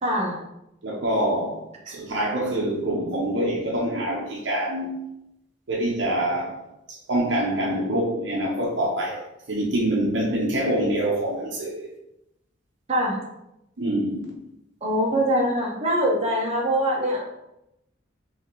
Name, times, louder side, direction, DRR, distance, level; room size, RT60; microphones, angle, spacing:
voice 1, 0.0-0.4 12.9-13.2 14.8-17.3, equal, 35° right, 1.1 m, -23 dB
voice 2, 0.8-5.0 5.7-6.6 6.9-11.9 13.8-14.2, right 1 dB, 65° right, 0.8 m, -25 dB
5.5 x 2.9 x 3.1 m
head